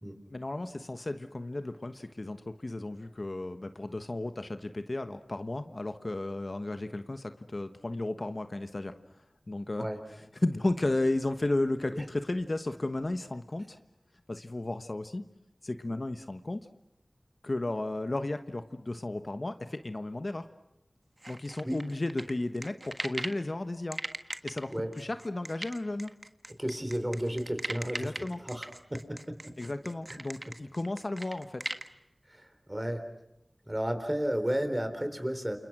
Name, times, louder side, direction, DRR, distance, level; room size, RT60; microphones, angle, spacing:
voice 1, 0.3-8.9 9.5-9.9 10.4-13.8 14.3-15.2 15.6-16.7 17.4-20.5 21.3-24.0 24.4-26.1 27.9-28.4 29.6-31.7, left 2 dB, 50° left, 9 dB, 1.2 m, -34 dB
sound 1, 21.2-23.4 23.9-31.9, right 1 dB, 40° right, 1.6 m, -39 dB
voice 2, 26.6-29.2 30.1-30.2 32.3-33.0 33.7-35.6, equal, 15° right, 7 dB, 4.2 m, -33 dB
29.5 x 28.0 x 6.2 m, 0.88 s
wide cardioid pair, 45°, 0 cm